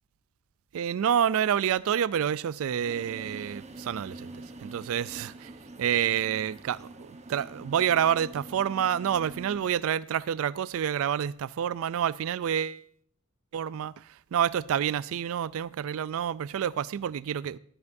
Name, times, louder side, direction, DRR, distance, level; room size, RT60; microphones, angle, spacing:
voice 1, 0.7-4.3 4.6-5.5 5.8-12.8 13.5-17.6, right 9 dB, 70° right, 0.3 m, -28 dB
sound 1, 2.8-9.6, right 2 dB, 30° right, 1.1 m, -45 dB
15.0 x 12.0 x 2.6 m
head